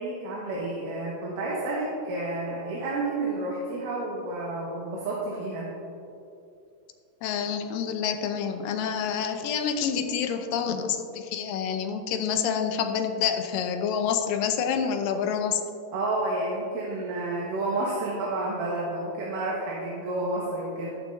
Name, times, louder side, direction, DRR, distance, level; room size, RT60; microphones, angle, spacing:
voice 1, 0.0-5.7 15.9-20.9, right 2 dB, 70° right, -5 dB, 2.9 m, -30 dB
voice 2, 7.2-15.6, left 7 dB, 80° left, 7 dB, 2.4 m, -28 dB
14.0 x 12.0 x 2.6 m, 2.6 s
omnidirectional pair, 4.0 m